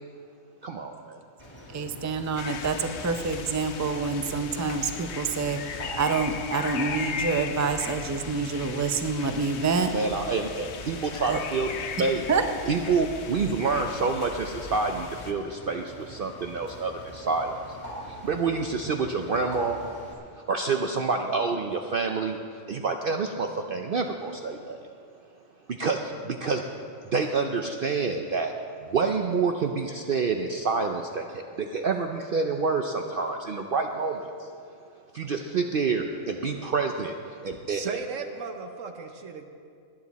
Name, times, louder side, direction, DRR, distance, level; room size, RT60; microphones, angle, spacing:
voice 1, 0.6-1.2 9.9-12.3 12.7-17.8 18.1-19.8 20.3-22.4 22.7-24.9 25.7-26.7 27.1-28.5 28.8-34.5 35.1-37.8, right 4 dB, 55° right, 4 dB, 0.7 m, -28 dB
Bird, 1.4-20.1, equal, 35° left, 2.6 m, -44 dB
voice 2, 1.7-9.9 11.3-11.4 12.3-12.5, right 4 dB, 30° right, 7 dB, 0.3 m, -27 dB
sound 1, 2.4-15.3, left 6 dB, 60° left, 1.0 m, -38 dB
voice 3, 37.5-39.5, right 5 dB, 75° right, 5 dB, 1.2 m, -36 dB
19.0 x 10.0 x 4.1 m, 2.3 s
omnidirectional pair, 1.4 m